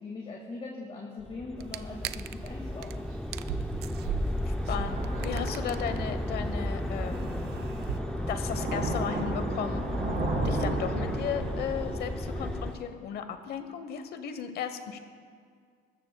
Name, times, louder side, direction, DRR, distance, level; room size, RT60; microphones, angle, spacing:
voice 1, 0.0-3.1, left 3 dB, 35° left, -2 dB, 2.0 m, -41 dB
sound 1, 1.2-12.7, left 1 dB, 5° left, 0.5 m, -34 dB
sound 2, 1.6-2.5 2.8-2.9 3.2-8.0, right 11 dB, 75° right, 0.4 m, -39 dB
Thunder / Rain, 1.8-12.8, right 2 dB, 60° right, 3.7 m, -36 dB
voice 2, 4.5-7.5 8.3-9.8 10.4-15.0, left 8 dB, 70° left, 9 dB, 1.1 m, -35 dB
20.0 x 13.5 x 2.3 m, 2.1 s
cardioid pair, 110°, 17 cm